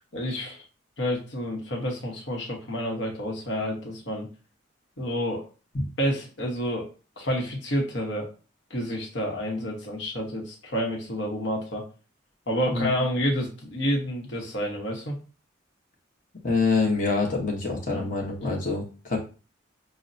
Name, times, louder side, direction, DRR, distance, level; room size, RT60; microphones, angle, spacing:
voice 1, 0.1-0.6 1.0-4.3 5.0-5.4 6.0-6.9 7.2-8.3 8.7-11.8 12.5-15.2 17.9-18.0, equal, 65° left, 0 dB, 1.2 m, -29 dB
voice 2, 16.4-19.2, left 3 dB, 45° left, -1 dB, 1.0 m, -26 dB
6.1 x 2.1 x 2.6 m, 0.35 s
head